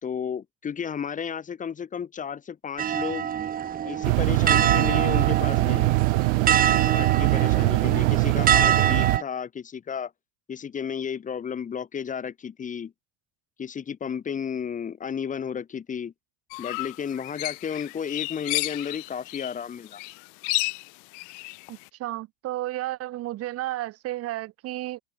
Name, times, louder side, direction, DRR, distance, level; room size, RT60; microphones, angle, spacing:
voice 1, 0.0-3.3 3.8-5.9 6.9-10.1 10.5-12.9 13.6-16.1 16.6-20.0, left 7 dB, 20° left, 3.1 m, -33 dB
sound 1, 2.8-9.2, right 9 dB, 25° right, 1.6 m, -25 dB
sound 2, 4.0-9.2, right 26 dB, 75° right, 1.1 m, -22 dB
sound 3, 16.5-19.6 19.9-21.8, left 31 dB, 60° left, 5.0 m, -32 dB
voice 2, 21.7-25.0, right 15 dB, 45° right, 5.2 m, -32 dB
supercardioid pair, 145°, 34 cm